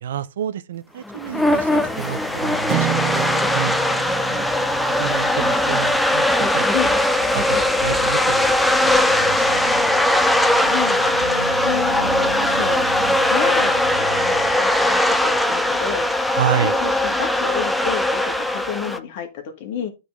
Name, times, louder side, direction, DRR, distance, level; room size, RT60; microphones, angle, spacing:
voice 1, 0.0-3.8 4.3-4.5 5.0-7.0 7.3-8.6 9.1-9.8 16.3-16.8, right 9 dB, 60° right, 0.6 m, -29 dB
sound 1, 1.1-19.0, left 1 dB, 5° left, 0.7 m, -20 dB
sound 2, 1.3-14.6, right 4 dB, 85° right, 1.0 m, -36 dB
sound 3, 2.7-7.0, right 11 dB, 40° right, 1.5 m, -30 dB
voice 2, 10.7-11.0 11.6-12.0 12.6-16.1 16.6-19.9, left 8 dB, 45° left, 2.1 m, -30 dB
12.0 x 4.1 x 3.7 m
figure-of-eight pair, 110°, 0 cm